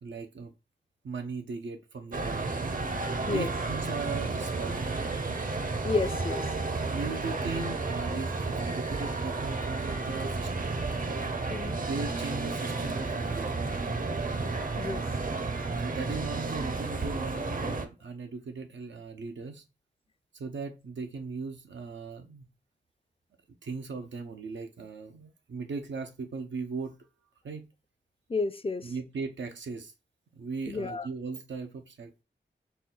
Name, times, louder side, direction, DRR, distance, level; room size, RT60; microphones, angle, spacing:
voice 1, 0.0-0.5 1.0-2.7 3.3-5.4 6.8-10.8 11.8-13.6 15.8-19.6 20.3-22.5 23.6-27.0 27.4-27.7 28.8-29.9 30.3-32.2, right 4 dB, 90° right, 0.6 m, -38 dB
sound 1, 2.1-17.9, right 3 dB, 50° right, 0.7 m, -32 dB
voice 2, 5.8-6.4 11.5-11.8 14.8-15.0 28.3-28.9 30.7-31.1, left 3 dB, 30° left, 0.4 m, -30 dB
4.2 x 2.2 x 3.7 m
cardioid pair, 40°, 19 cm